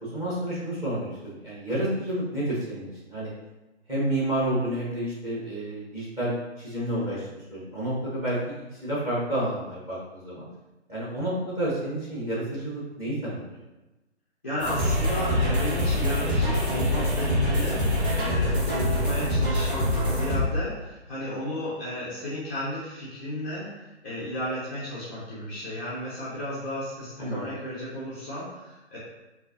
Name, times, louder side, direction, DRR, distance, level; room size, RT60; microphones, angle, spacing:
voice 1, 0.0-3.3 3.9-10.4 10.9-13.5 27.2-27.5, right 1 dB, 10° right, -7 dB, 0.7 m, -30 dB
voice 2, 14.4-29.0, left 1 dB, 10° left, -10 dB, 0.4 m, -34 dB
sound 1, 14.6-20.4, left 1 dB, 50° right, 1.4 m, -25 dB
sound 2, 14.8-18.4, right 1 dB, 75° right, 1.0 m, -39 dB
4.0 x 2.6 x 2.6 m, 1.0 s
figure-of-eight pair, 145°, 34 cm